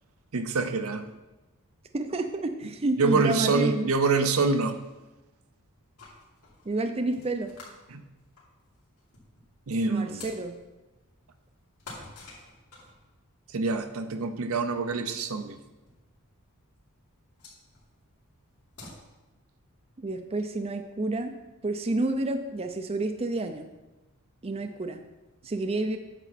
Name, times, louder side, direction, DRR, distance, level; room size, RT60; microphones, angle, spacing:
voice 1, 0.3-1.0 3.0-4.8 7.9-8.0 9.7-10.2 13.5-15.6, right 4 dB, 70° right, 8 dB, 0.7 m, -26 dB
voice 2, 1.9-3.9 6.7-7.5 9.9-10.6 20.0-21.4 21.6-23.7 24.4-25.0 25.4-26.0, right 2 dB, 25° right, 6 dB, 0.5 m, -29 dB
sound 1, 6.0-19.0, left 3 dB, 75° left, 3.0 m, -51 dB
8.9 x 7.1 x 4.2 m, 1.1 s
head